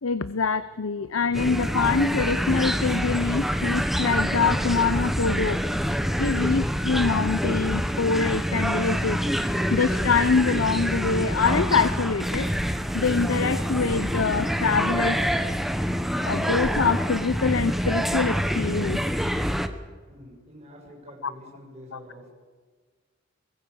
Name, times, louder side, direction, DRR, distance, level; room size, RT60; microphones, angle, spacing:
voice 1, 0.0-5.6 6.2-9.2 9.7-12.5 12.9-15.2 16.2-19.0 21.2-21.3 21.9-22.0, left 5 dB, 85° left, 14 dB, 0.8 m, -25 dB
sound 1, 1.3-19.7, equal, ahead, 1.2 m, -26 dB
voice 2, 20.1-22.3, equal, 35° right, -2 dB, 6.8 m, -46 dB
24.0 x 21.5 x 7.0 m, 1.4 s
head